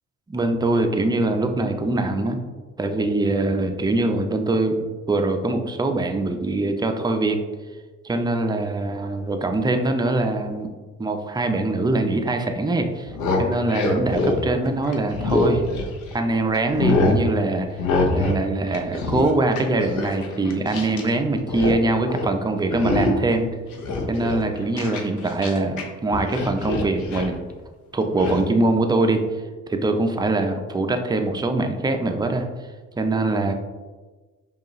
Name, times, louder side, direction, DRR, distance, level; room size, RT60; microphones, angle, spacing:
voice 1, 0.3-2.4 2.8-4.8 5.1-7.4 8.0-10.7 11.0-13.1 13.4-15.6 16.1-17.7 18.1-23.5 24.1-27.4 27.9-29.2 29.7-32.5 33.0-33.5, right 2 dB, 15° right, 5 dB, 0.4 m, -23 dB
sound 1, 13.0-16.2 16.5-17.2 17.8-18.4 18.7-21.1 21.4-21.8 22.1-22.3 22.7-23.3 23.7-25.8 26.1-27.4 28.2-28.4, left 2 dB, 80° left, 0.7 m, -24 dB
4.9 x 2.4 x 3.0 m, 1.3 s
cardioid pair, 90°, 30 cm